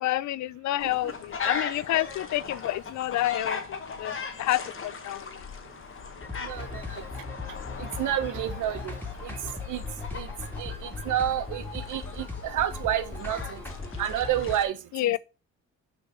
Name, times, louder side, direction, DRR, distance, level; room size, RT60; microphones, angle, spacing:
voice 1, 0.0-5.3 14.9-15.2, left 15 dB, 70° left, 0.5 m, -29 dB
sound 1, 0.8-14.6, left 5 dB, 45° left, 1.5 m, -38 dB
sound 2, 6.2-14.6, left 3 dB, 5° left, 2.3 m, -38 dB
voice 2, 6.4-7.0 7.8-8.9 9.2-9.3 9.7-9.8 10.1-10.3 10.6-13.6 14.0-15.2, right 11 dB, 80° right, 1.1 m, -30 dB
6.7 x 4.6 x 5.0 m
cardioid pair, 90°, 30 cm